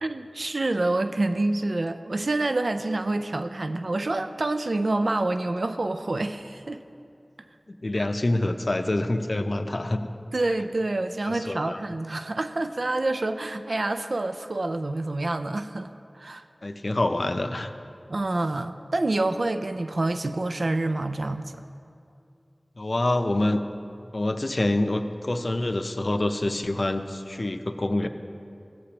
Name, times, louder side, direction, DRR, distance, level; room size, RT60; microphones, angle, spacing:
voice 1, 0.0-6.8 10.3-16.4 18.1-21.6, right 2 dB, 80° right, 9 dB, 0.3 m, -27 dB
voice 2, 7.7-10.0 11.2-11.8 16.6-17.7 22.8-23.6 24.1-28.1, left 1 dB, 65° left, 7 dB, 0.5 m, -26 dB
16.0 x 8.3 x 2.9 m, 2.5 s
wide cardioid pair, 50°, 0 cm